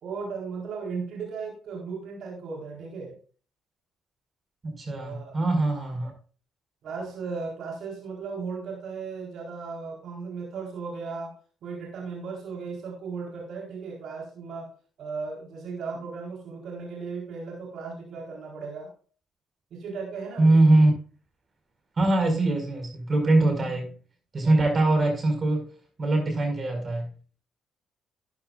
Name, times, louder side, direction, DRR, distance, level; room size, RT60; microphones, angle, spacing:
voice 1, 0.0-3.2 4.9-5.9 6.8-11.3 11.6-14.7 15.0-18.9 19.7-20.5, right 4 dB, 65° right, -2 dB, 4.2 m, -36 dB
voice 2, 4.6-6.1 20.4-20.9 22.0-23.9 24.3-25.6 26.0-27.1, right 2 dB, 35° right, 4 dB, 5.3 m, -22 dB
13.5 x 9.8 x 2.5 m, 0.40 s
supercardioid pair, 75°, 0 cm